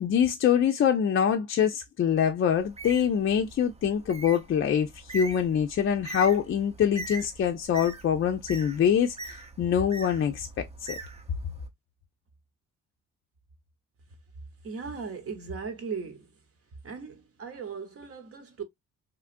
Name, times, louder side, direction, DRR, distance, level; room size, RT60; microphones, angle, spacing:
voice 1, 0.0-11.0, left 8 dB, 45° left, 0.4 m, -25 dB
Bird, 2.6-11.7, right 2 dB, 20° right, 0.6 m, -42 dB
voice 2, 14.6-16.4 16.8-18.6, right 5 dB, 50° right, 1.0 m, -38 dB
3.0 x 2.4 x 2.5 m
cardioid pair, 90°, 30 cm